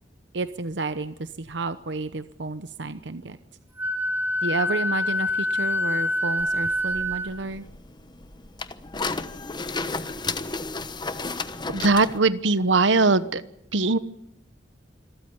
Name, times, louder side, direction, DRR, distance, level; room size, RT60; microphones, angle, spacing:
voice 1, 0.3-3.4 4.4-7.6, right 3 dB, 65° right, 12 dB, 0.9 m, -31 dB
Wind instrument woodwind instrument, 3.8-7.3, left 1 dB, 10° right, 4.9 m, -26 dB
sound 1, 6.4-12.2, left 3 dB, 25° left, 1.1 m, -33 dB
voice 2, 11.7-13.4 13.7-14.0, right 3 dB, 85° right, 14 dB, 1.2 m, -20 dB
26.0 x 14.5 x 9.7 m, 0.80 s
head